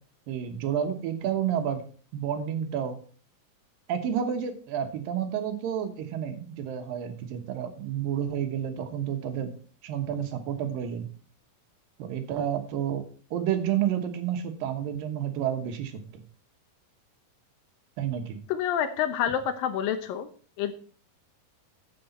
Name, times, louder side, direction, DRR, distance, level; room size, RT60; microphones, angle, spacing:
voice 1, 0.3-1.8 2.1-3.0 3.9-9.5 9.8-11.1 12.0-13.0 13.3-16.2 18.0-18.4, right 9 dB, 85° right, 7 dB, 3.0 m, -30 dB
voice 2, 18.5-20.3 20.6-20.7, left 9 dB, 85° left, 8 dB, 2.6 m, -28 dB
9.7 x 8.0 x 4.2 m, 0.43 s
omnidirectional pair, 3.9 m